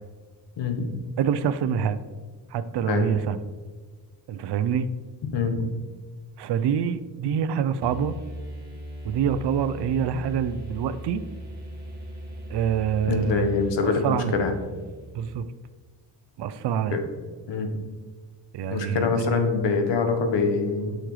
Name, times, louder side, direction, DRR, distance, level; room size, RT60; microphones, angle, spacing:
voice 1, 0.6-0.9 2.8-3.0 5.3-5.6 13.1-14.6 16.9-17.0 17.5-17.7 18.7-21.0, left 4 dB, 80° left, 5 dB, 1.2 m, -24 dB
voice 2, 1.2-2.0 2.5-3.4 4.3-4.9 6.4-8.1 9.0-11.2 12.5-13.5 13.8-14.3 15.1-15.4 16.4-17.0 18.5-19.2, right 8 dB, 70° right, 13 dB, 0.6 m, -26 dB
sound 1, 7.8-15.5, equal, 20° right, 2.0 m, -39 dB
8.4 x 6.4 x 3.2 m, 1.5 s
cardioid pair, 125°, 43 cm